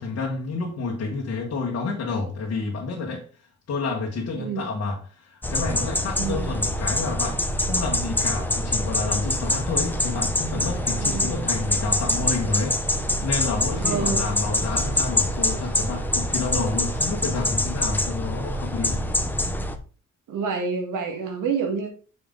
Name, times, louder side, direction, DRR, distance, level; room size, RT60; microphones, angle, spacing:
voice 1, 0.0-3.2 3.7-19.1, left 3 dB, 50° left, 1.4 m, -29 dB
sound 1, 5.4-19.8, left 1 dB, 5° left, 0.5 m, -25 dB
voice 2, 6.2-6.5 11.0-11.4 13.8-14.2 20.3-21.9, right 5 dB, 85° right, 1.7 m, -28 dB
sound 2, 8.5-17.1, right 3 dB, 30° right, 2.0 m, -46 dB
6.8 x 5.3 x 3.7 m
cardioid pair, 175°, 30 cm